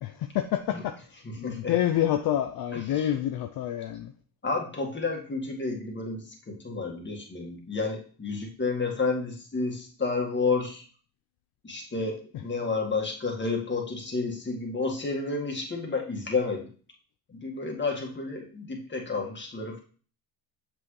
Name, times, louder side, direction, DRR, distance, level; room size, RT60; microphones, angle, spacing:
voice 1, 0.0-4.1, left 11 dB, 55° left, 7 dB, 0.7 m, -28 dB
voice 2, 1.4-1.7 4.4-10.8 11.6-16.7 17.3-19.8, left 4 dB, 25° left, 1 dB, 1.9 m, -30 dB
6.8 x 6.1 x 3.2 m, 0.42 s
supercardioid pair, 80°, 45 cm